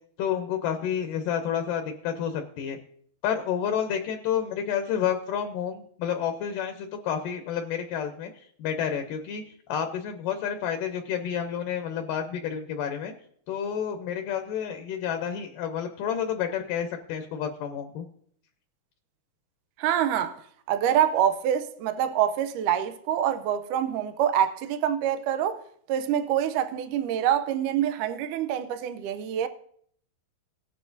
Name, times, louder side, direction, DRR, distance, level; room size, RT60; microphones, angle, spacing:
voice 1, 0.2-2.8 3.2-13.1 13.5-18.1, left 8 dB, 75° left, 2.2 m, -30 dB
voice 2, 19.8-20.4 20.7-25.6 25.9-29.5, right 10 dB, 80° right, 1.9 m, -26 dB
18.0 x 9.2 x 2.7 m
omnidirectional pair, 4.5 m